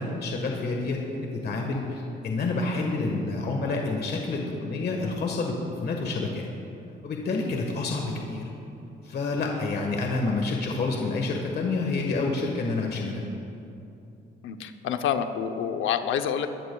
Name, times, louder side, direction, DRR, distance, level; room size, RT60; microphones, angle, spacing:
voice 1, 0.0-6.5 7.0-8.5 9.0-13.2, left 3 dB, 55° left, 1 dB, 1.5 m, -28 dB
voice 2, 14.4-16.5, left 8 dB, 80° left, 8 dB, 0.7 m, -27 dB
22.0 x 13.5 x 2.3 m, 2.8 s
cardioid pair, 90°, 20 cm